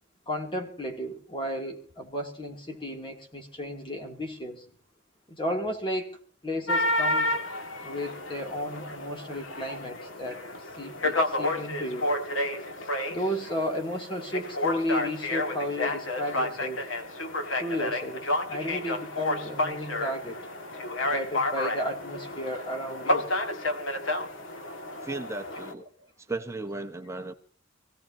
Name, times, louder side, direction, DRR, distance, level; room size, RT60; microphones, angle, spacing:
voice 1, 0.3-4.6 5.3-6.1 6.4-7.3 7.8-10.4 10.8-12.1 13.1-16.9 17.6-20.4 21.0-23.3, equal, 25° left, 2 dB, 2.7 m, -33 dB
sound 1, 6.7-25.7, left 1 dB, 80° left, 2.0 m, -31 dB
voice 2, 25.0-25.8 26.2-27.3, right 2 dB, 15° right, 5 dB, 1.1 m, -35 dB
25.5 x 16.5 x 2.8 m, 0.42 s
head